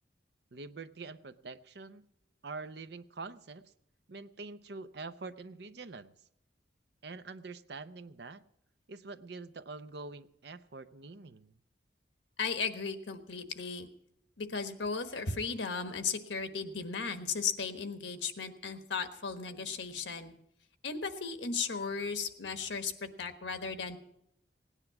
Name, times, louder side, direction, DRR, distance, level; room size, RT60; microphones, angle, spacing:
voice 1, 0.5-2.0 2.4-3.6 4.1-6.1 7.0-8.4 8.9-11.6, right 3 dB, 65° right, 11 dB, 0.7 m, -45 dB
voice 2, 12.4-13.9 14.4-20.3 20.8-24.0, left 5 dB, 85° left, 8 dB, 1.3 m, -36 dB
17.0 x 10.0 x 5.9 m, 0.79 s
head